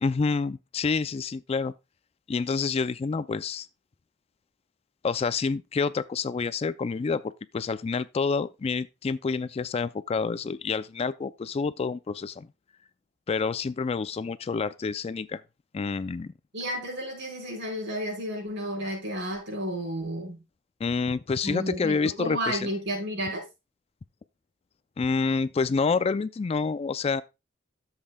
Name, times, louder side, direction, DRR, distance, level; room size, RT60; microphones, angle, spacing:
voice 1, 0.0-1.7 2.3-3.7 5.0-12.5 13.3-15.4 15.7-16.3 20.8-22.7 25.0-27.2, left 4 dB, 30° left, 0.3 m, -28 dB
voice 2, 16.5-20.4 21.4-23.5, equal, 65° right, 4.9 m, -32 dB
12.0 x 7.4 x 2.2 m
head